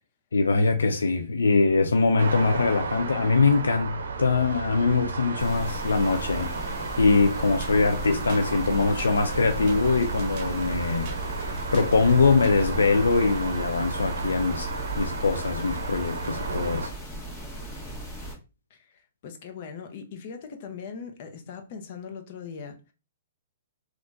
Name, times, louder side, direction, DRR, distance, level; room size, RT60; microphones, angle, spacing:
voice 1, 0.3-16.9, left 4 dB, 85° left, 0.3 m, -23 dB
sound 1, 2.2-16.9, right 4 dB, 75° right, 0.5 m, -33 dB
sound 2, 5.4-18.4, right 1 dB, 15° left, 1.6 m, -37 dB
sound 3, 7.6-12.8, right 5 dB, 45° right, 0.8 m, -48 dB
voice 2, 18.7-22.9, left 6 dB, 50° left, 0.7 m, -40 dB
3.6 x 2.4 x 2.5 m
hypercardioid pair, 130°, 0 cm